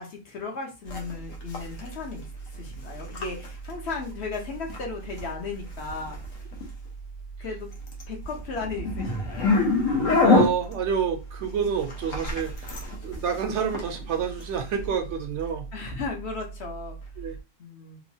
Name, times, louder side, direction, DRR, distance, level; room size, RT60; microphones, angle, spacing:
voice 1, 0.0-2.3 2.5-6.2 7.4-7.7 8.1-9.5 15.7-17.0 17.6-18.0, left 4 dB, 60° left, 2 dB, 0.9 m, -35 dB
sound 1, 0.9-17.4, left 3 dB, 85° left, 1.1 m, -30 dB
voice 2, 10.2-12.7 13.0-15.7 17.2-17.3, right 7 dB, 70° right, 5 dB, 0.8 m, -28 dB
3.0 x 2.2 x 2.7 m, 0.28 s
omnidirectional pair, 1.3 m